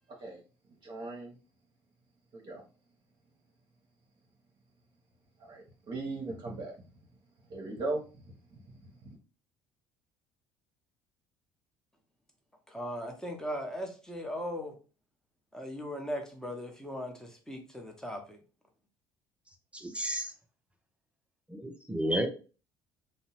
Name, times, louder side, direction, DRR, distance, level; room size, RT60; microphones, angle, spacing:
voice 1, 0.8-1.3 2.3-2.6 5.4-6.7 7.5-8.0, right 2 dB, 45° right, 0 dB, 0.8 m, -37 dB
voice 2, 12.7-14.7 15.5-18.4, equal, 5° left, 3 dB, 0.8 m, -38 dB
voice 3, 19.7-20.3 21.5-22.3, right 1 dB, 10° right, 4 dB, 0.5 m, -32 dB
2.7 x 2.1 x 2.8 m, 0.35 s
hypercardioid pair, 65°, 11 cm